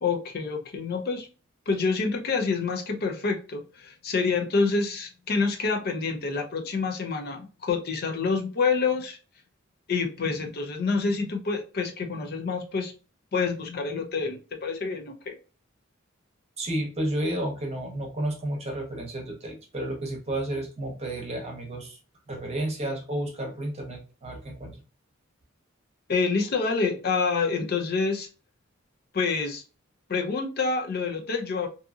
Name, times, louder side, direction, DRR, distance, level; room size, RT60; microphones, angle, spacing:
voice 1, 0.0-1.3 1.7-9.2 9.9-12.9 13.3-15.3 26.1-28.3 29.1-29.6 30.1-31.7, left 4 dB, 50° left, 0.5 m, -27 dB
voice 2, 16.6-22.0 22.3-24.8, right 1 dB, 30° right, 0.8 m, -31 dB
2.7 x 2.5 x 2.3 m
head